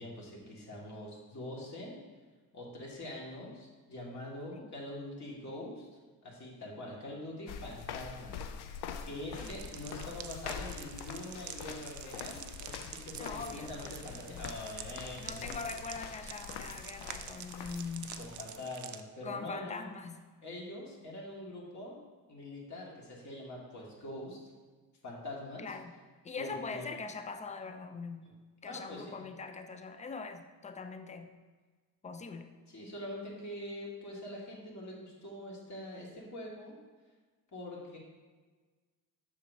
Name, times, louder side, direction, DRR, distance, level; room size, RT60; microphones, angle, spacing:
voice 1, 0.0-2.0 2.5-5.9 6.2-8.5 9.0-15.5 18.2-19.8 20.4-22.0 22.3-24.4 25.0-25.6 26.4-26.9 28.6-29.3 32.7-36.8 37.5-38.0, left 1 dB, 45° left, -4 dB, 1.9 m, -44 dB
sound 1, 7.5-18.6, left 7 dB, 80° left, 0.6 m, -45 dB
sound 2, 9.4-19.0, right 9 dB, 50° right, 0.4 m, -47 dB
voice 2, 13.2-14.6 15.2-18.2 19.2-20.3 25.6-26.0 26.2-28.3 28.6-31.4 32.0-32.6, left 4 dB, 20° left, 8 dB, 0.4 m, -42 dB
7.2 x 6.1 x 2.7 m, 1.4 s
cardioid pair, 105°, 38 cm